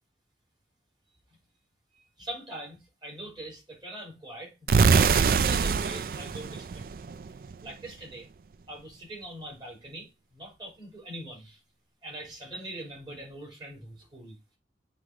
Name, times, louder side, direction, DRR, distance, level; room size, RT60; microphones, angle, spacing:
voice 1, 2.2-6.8 7.6-8.2 8.7-11.6 12.0-14.4, right 1 dB, 25° right, 3.1 m, -42 dB
sound 1, 4.7-7.5, right 5 dB, 50° right, 0.3 m, -23 dB
7.9 x 3.4 x 4.8 m
head